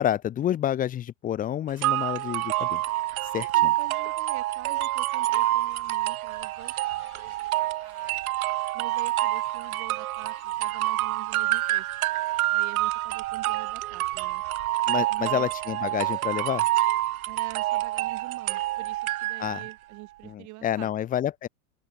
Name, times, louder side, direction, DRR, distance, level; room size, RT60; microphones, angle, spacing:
voice 1, 0.0-2.8 3.3-3.7 14.9-16.6 19.4-19.6 20.2-21.5, left 11 dB, 20° left, 0.8 m, -29 dB
sound 1, 1.8-19.7, right 16 dB, 70° right, 0.7 m, -27 dB
voice 2, 3.3-8.2 8.7-11.9 12.5-14.4 15.1-15.5 17.3-20.9, right 22 dB, 40° right, 3.3 m, -46 dB
Screech, 5.2-13.1, left 11 dB, 80° left, 6.0 m, -56 dB
hypercardioid pair, 125°, 45 cm